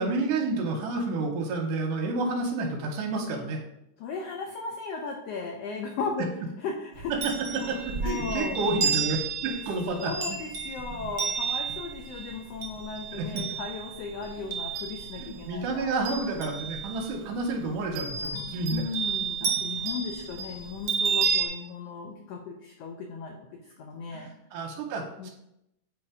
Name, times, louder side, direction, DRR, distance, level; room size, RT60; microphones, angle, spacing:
voice 1, 0.0-3.6 7.5-10.4 13.1-13.4 15.2-18.9 24.1-25.3, right 3 dB, 90° right, 1 dB, 2.4 m, -30 dB
voice 2, 4.0-6.3 6.6-7.3 7.7-8.6 10.0-15.9 18.2-18.4 18.7-24.3 25.2-25.3, left 5 dB, 80° left, 2 dB, 1.4 m, -36 dB
Chime, 6.9-15.4 15.8-17.1 17.9-21.5, right 6 dB, 75° right, 1.1 m, -31 dB
8.3 x 3.0 x 4.8 m, 0.81 s
omnidirectional pair, 3.6 m